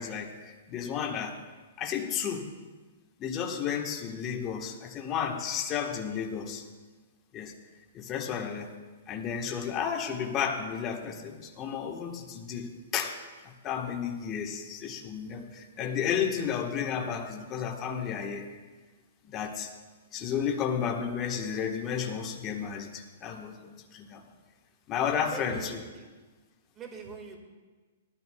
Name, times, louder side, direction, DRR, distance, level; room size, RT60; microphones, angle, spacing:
voice 1, 0.0-1.4 1.8-2.5 3.2-6.6 7.3-7.5 7.9-8.7 9.1-13.2 13.4-18.5 19.3-19.7 20.1-24.2 24.9-25.8, left 7 dB, 25° left, 2 dB, 1.3 m, -32 dB
voice 2, 25.1-26.0 26.7-27.4, right 4 dB, 20° right, 2 dB, 1.8 m, -43 dB
18.5 x 12.5 x 2.3 m, 1.3 s
hypercardioid pair, 145°, 0 cm